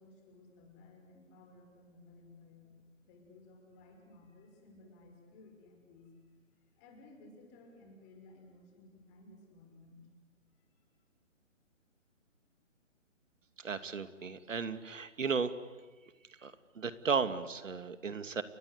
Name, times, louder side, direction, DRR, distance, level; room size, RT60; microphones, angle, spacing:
voice 1, 0.0-2.7 3.0-6.1 6.8-10.1, left 2 dB, 20° left, 3 dB, 6.0 m, -57 dB
voice 2, 13.6-15.5 16.4-18.4, right 5 dB, 75° right, 11 dB, 2.5 m, -35 dB
30.0 x 24.0 x 8.2 m, 1.3 s
hypercardioid pair, 155°, 39 cm